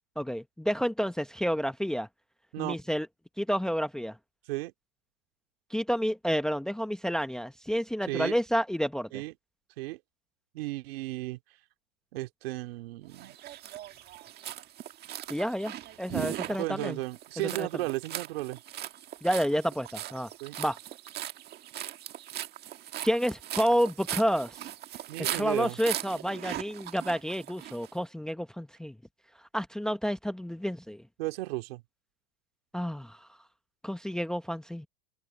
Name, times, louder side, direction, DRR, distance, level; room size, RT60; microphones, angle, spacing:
voice 1, 0.2-2.1 2.6-3.1 3.4-4.2 5.7-9.1 15.3-17.0 17.6-17.7 19.2-20.3 20.6-20.8 23.0-24.6 25.3-28.9 29.5-31.0 32.7-33.2 33.8-34.9, equal, ahead, 0.9 m, -29 dB
voice 2, 10.5-11.4 12.1-13.3 16.3-18.6 20.4-20.6 25.1-25.8 31.2-31.8, right 19 dB, 70° right, 2.5 m, -34 dB
sound 1, 13.1-27.9, right 13 dB, 30° right, 1.6 m, -39 dB
supercardioid pair, 140°, 31 cm